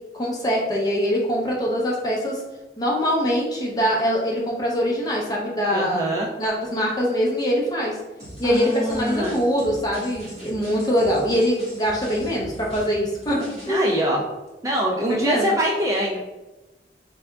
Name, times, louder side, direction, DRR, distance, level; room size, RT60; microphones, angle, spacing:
voice 1, 0.1-2.4 2.8-8.0 8.4-14.0 15.1-15.5, equal, 20° left, -3 dB, 0.7 m, -23 dB
voice 2, 5.7-6.3 8.4-9.4 13.7-14.2 14.6-16.2, equal, 20° right, -2 dB, 0.3 m, -24 dB
sound 1, 8.2-13.7, right 1 dB, 40° right, 1.5 m, -41 dB
3.6 x 3.3 x 2.3 m, 1.1 s
head